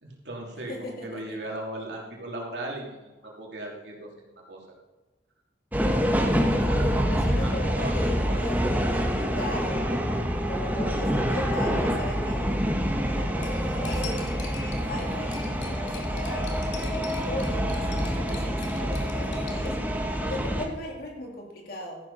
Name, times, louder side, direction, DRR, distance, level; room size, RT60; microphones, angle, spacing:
voice 1, 0.0-4.7 7.3-7.5 7.8-8.5, right 1 dB, 70° right, -2 dB, 3.2 m, -37 dB
voice 2, 0.7-1.4 6.5-8.6 8.9-10.0 10.4-12.6 13.1-16.5 16.8-19.8 20.2-22.0, left 1 dB, 55° left, -1 dB, 3.0 m, -38 dB
sound 1, 5.7-20.7, equal, 10° right, 1.2 m, -26 dB
Cutlery silverware, 13.4-19.7, left 6 dB, 90° left, 2.5 m, -44 dB
14.0 x 11.0 x 4.3 m, 1.2 s
head